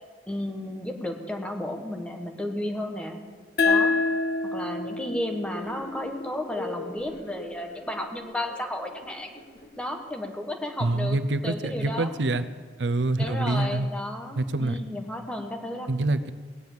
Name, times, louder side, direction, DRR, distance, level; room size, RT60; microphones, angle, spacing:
voice 1, 0.3-3.2 3.6-4.0 4.5-9.3 9.8-11.2 11.4-12.1 13.2-15.9, left 1 dB, 5° left, 4 dB, 1.2 m, -33 dB
sound 1, 3.6-6.8, left 3 dB, 60° left, 1.1 m, -27 dB
sound 2, 5.5-9.7, left 1 dB, 40° left, 2.2 m, -42 dB
voice 2, 10.8-12.4 12.8-13.9 14.4-14.8 15.9-16.3, right 2 dB, 85° right, 13 dB, 0.6 m, -26 dB
18.5 x 7.8 x 7.2 m, 1.5 s
head